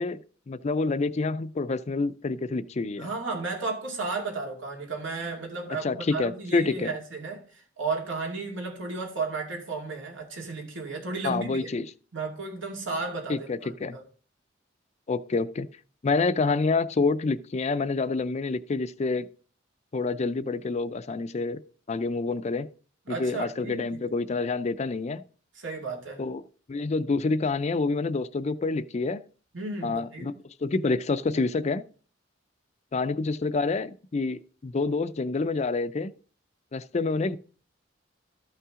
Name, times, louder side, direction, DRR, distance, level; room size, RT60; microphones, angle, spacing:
voice 1, 0.0-3.1 5.8-6.9 11.2-11.9 13.3-14.0 15.1-15.7 16.0-19.3 19.9-21.6 21.9-22.7 23.1-25.2 26.2-26.4 26.7-29.2 29.8-30.3 30.6-31.8 32.9-36.1 36.7-37.4, left 3 dB, 35° left, 0.4 m, -27 dB
voice 2, 3.0-11.7 12.1-14.0 23.1-24.0 25.5-26.2 29.5-30.3, right 3 dB, 85° right, 2.4 m, -34 dB
13.0 x 5.6 x 3.7 m
head